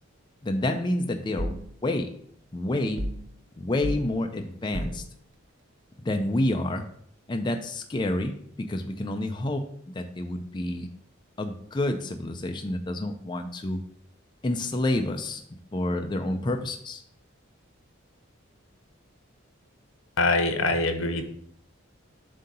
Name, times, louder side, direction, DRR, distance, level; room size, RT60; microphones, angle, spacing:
voice 1, 0.4-1.6 1.8-2.1 2.5-3.0 3.6-5.0 6.0-6.8 7.3-8.3 8.7-9.6 9.9-10.9 11.4-13.8 14.4-15.4 15.7-17.0, left 1 dB, 20° left, 4 dB, 0.4 m, -28 dB
sound 1, 1.4-1.7 3.0-3.3 3.8-4.1 4.7-5.1, equal, 60° right, 0.8 m, -32 dB
voice 2, 20.2-21.2, left 2 dB, 85° left, 8 dB, 0.8 m, -24 dB
7.6 x 2.8 x 5.3 m, 0.64 s
head